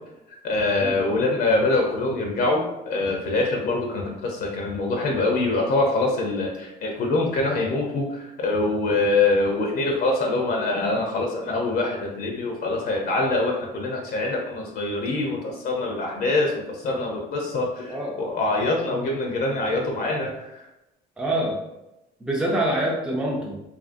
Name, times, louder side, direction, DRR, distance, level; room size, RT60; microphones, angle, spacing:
voice 1, 0.4-20.6, left 2 dB, 65° left, 0 dB, 0.6 m, -24 dB
voice 2, 17.9-18.3 21.2-21.6 22.2-23.6, right 1 dB, 5° right, -3 dB, 0.4 m, -25 dB
2.7 x 2.5 x 2.5 m, 0.92 s
cardioid pair, 110°, 17 cm